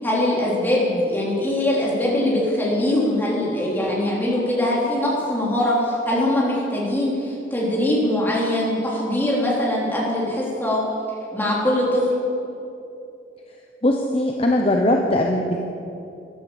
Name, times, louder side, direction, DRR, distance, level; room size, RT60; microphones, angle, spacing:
voice 1, 0.0-10.8 11.3-12.1, left 1 dB, 10° left, -5 dB, 3.6 m, -22 dB
voice 2, 13.8-15.6, left 1 dB, 30° left, 1 dB, 0.9 m, -20 dB
14.0 x 11.5 x 7.1 m, 2.7 s
head